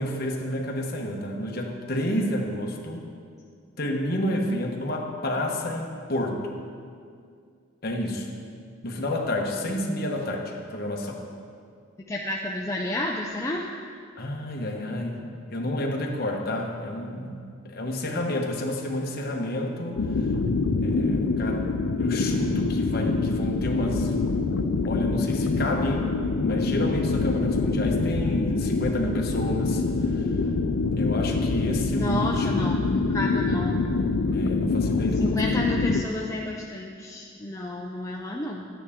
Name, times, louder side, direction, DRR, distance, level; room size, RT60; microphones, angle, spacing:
voice 1, 0.0-3.1 3.8-6.4 7.8-8.3 8.8-11.2 14.2-20.0 20.8-24.1 24.8-26.1 26.4-29.8 30.1-30.2 30.9-32.7 34.3-35.4, left 1 dB, 50° left, 0 dB, 1.1 m, -30 dB
voice 2, 12.1-13.7 32.0-33.8 35.2-38.6, left 1 dB, 15° left, -1 dB, 0.4 m, -31 dB
sound 1, 20.0-36.0, left 3 dB, 85° left, 0.5 m, -25 dB
11.0 x 9.3 x 3.6 m, 2.2 s
head